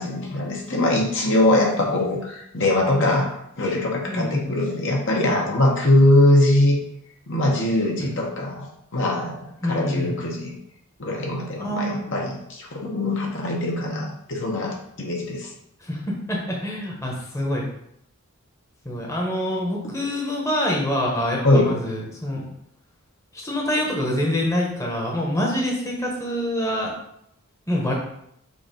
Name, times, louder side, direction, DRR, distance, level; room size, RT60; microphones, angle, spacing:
voice 1, 0.0-3.3 3.6-6.8 7.3-10.5 11.0-15.5 21.4-21.7 22.4-22.5, left 1 dB, 60° left, -1 dB, 1.3 m, -22 dB
voice 2, 4.1-4.5 8.0-8.1 9.6-10.2 11.6-12.1 15.8-17.7 18.8-22.4 23.3-26.9 27.7-27.9, left 1 dB, 15° left, -2 dB, 1.1 m, -26 dB
6.7 x 2.8 x 5.2 m, 0.75 s
head